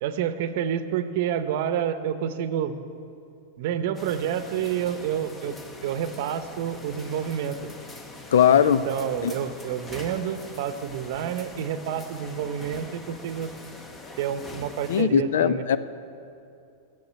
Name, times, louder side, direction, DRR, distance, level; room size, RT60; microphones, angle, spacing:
voice 1, 0.0-2.8 3.6-5.5 5.8-7.6 8.6-13.5 14.2-15.6, right 9 dB, 50° right, 11 dB, 0.7 m, -29 dB
sound 1, 3.9-15.0, left 2 dB, 15° left, 0.8 m, -43 dB
voice 2, 8.3-8.8 9.2-9.3 14.9-15.8, left 8 dB, 85° left, 14 dB, 0.5 m, -19 dB
13.0 x 7.1 x 9.2 m, 2.6 s
supercardioid pair, 165°, 0 cm